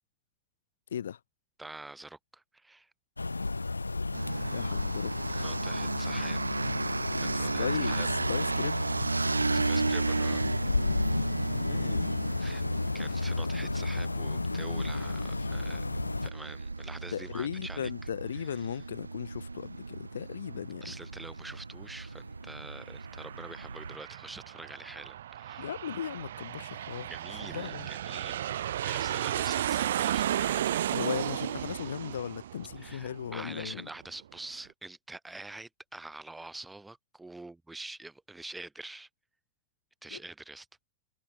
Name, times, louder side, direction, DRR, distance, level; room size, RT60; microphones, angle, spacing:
voice 1, 1.6-2.9 5.3-6.7 7.2-8.1 9.5-10.4 12.4-12.6 12.9-15.8 16.2-17.9 18.3-18.8 20.8-25.7 27.1-30.9 32.8-39.1 40.0-40.7, right 2 dB, 5° right, 7.5 m, -46 dB
sound 1, 3.2-16.3, left 3 dB, 80° left, 5.9 m, -33 dB
sound 2, 4.1-24.0, right 3 dB, 80° right, 1.3 m, -34 dB
voice 2, 4.5-5.1 7.3-8.8 11.7-12.1 17.1-20.9 25.6-27.1 27.5-27.9 30.9-33.8 40.1-40.2, left 9 dB, 65° left, 2.8 m, -37 dB
Aircraft, 22.6-33.7, right 11 dB, 60° right, 4.3 m, -34 dB
figure-of-eight pair, 90°, 0 cm